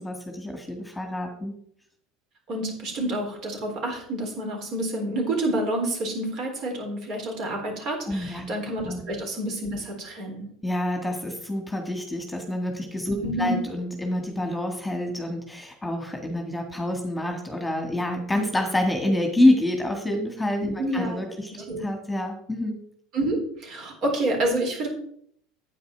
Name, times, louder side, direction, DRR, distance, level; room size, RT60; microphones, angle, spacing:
voice 1, 0.0-1.5 8.1-8.5 8.8-9.0 10.6-22.8, left 1 dB, 5° left, 3 dB, 1.9 m, -27 dB
voice 2, 2.5-10.5 13.2-13.6 20.8-21.2 21.5-21.8 23.1-24.9, right 1 dB, 50° right, 1 dB, 3.9 m, -28 dB
9.5 x 8.6 x 4.7 m, 0.65 s
figure-of-eight pair, 75°, 0 cm